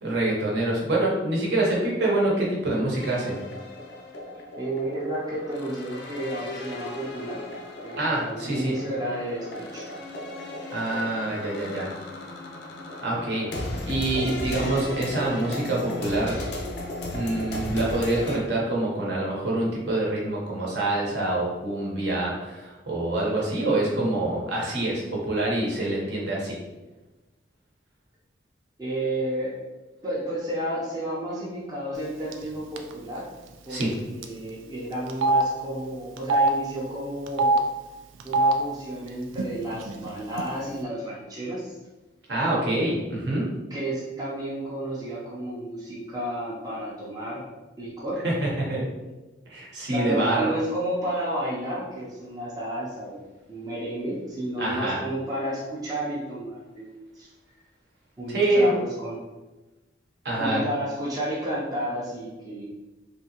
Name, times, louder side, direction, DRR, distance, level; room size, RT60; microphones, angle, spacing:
voice 1, 0.0-3.4 8.0-8.7 10.7-11.9 13.0-13.5 13.9-16.4 17.1-26.6 33.7-33.9 42.3-43.5 48.2-48.8 49.5-50.5 54.6-55.0 58.3-58.7 60.2-60.6, right 2 dB, 60° right, -4 dB, 0.9 m, -26 dB
sound 1, 2.9-18.4, left 1 dB, 55° left, 0.5 m, -36 dB
voice 2, 4.6-7.4 7.8-9.9 28.8-29.6 30.0-33.3 33.7-33.8 34.1-37.5 38.2-41.8 42.7-43.0 43.7-47.4 47.8-48.2 49.9-57.3 58.2-59.2 60.4-62.7, right 1 dB, 20° right, -7 dB, 0.6 m, -31 dB
Telephone, 32.3-32.5 32.8-32.9 33.8-33.9 34.2-34.3 35.1-35.4 36.2-36.5 37.3-37.6 38.2-38.5 39.3-39.5 39.7-40.4, right 2 dB, 85° right, 0.4 m, -22 dB
3.3 x 2.7 x 2.8 m, 1.1 s
head